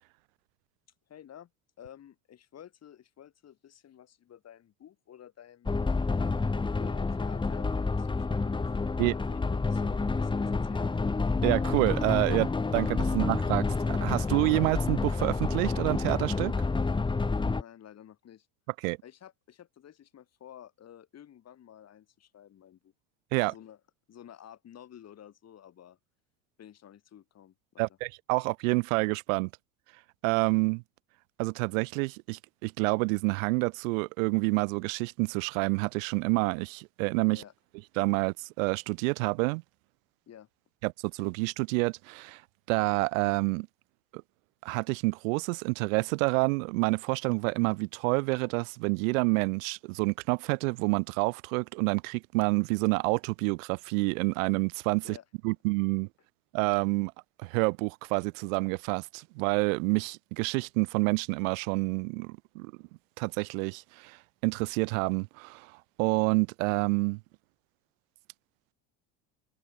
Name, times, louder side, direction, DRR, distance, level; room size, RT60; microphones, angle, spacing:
voice 1, 1.1-1.5 1.8-5.7 6.7-8.6 9.0-10.9 17.2-18.5 19.0-22.9 23.5-23.8 24.1-26.0 26.6-27.9 37.3-37.5 40.3-40.5 55.0-55.2, left 10 dB, 40° left, 6.3 m, -52 dB
sound 1, 5.7-17.6, left 3 dB, 10° left, 1.3 m, -29 dB
voice 2, 11.4-16.5 18.8-19.0 23.3-23.5 27.8-29.5 30.2-30.8 31.4-37.4 38.0-39.6 40.8-42.4 42.7-43.7 44.1-44.2 44.6-55.2 55.4-56.1 56.5-57.1 57.4-62.7 63.2-64.2 64.4-65.7 66.0-67.2, right 28 dB, 85° right, 0.5 m, -28 dB
supercardioid pair, 110°, 39 cm